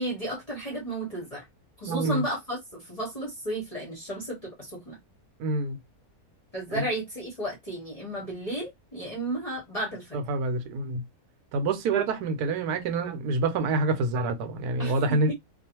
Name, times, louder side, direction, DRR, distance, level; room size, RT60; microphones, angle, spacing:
voice 1, 0.0-1.4 1.8-5.0 6.5-10.2 14.8-15.3, right 1 dB, 35° left, 0.7 m, -33 dB
voice 2, 1.9-2.2 5.4-5.8 6.7-6.8 10.3-11.0 11.5-15.3, right 3 dB, 80° right, 1.1 m, -27 dB
2.4 x 2.3 x 2.9 m
omnidirectional pair, 1.7 m